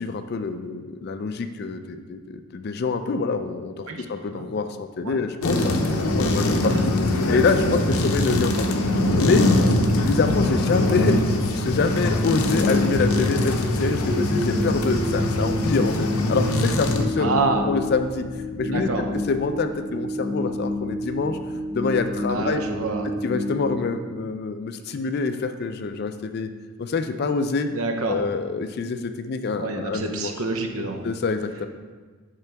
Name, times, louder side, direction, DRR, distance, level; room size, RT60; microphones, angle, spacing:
voice 1, 0.0-6.8 7.3-8.7 9.1-9.5 10.0-17.3 17.7-18.3 18.6-18.9 19.3-21.4 21.7-22.6 23.2-26.5 26.8-27.7 28.1-30.3 31.0-31.7, left 4 dB, 45° left, 9 dB, 0.4 m, -26 dB
sound 1, 5.4-17.1, left 1 dB, 80° left, 0.7 m, -22 dB
sound 2, 12.4-24.6, left 2 dB, 25° right, 1.7 m, -29 dB
voice 2, 17.2-17.7 18.6-19.0 22.3-23.1 27.7-28.2 29.6-31.0, right 3 dB, 75° right, 4 dB, 0.7 m, -27 dB
10.5 x 3.8 x 3.4 m, 1.4 s
head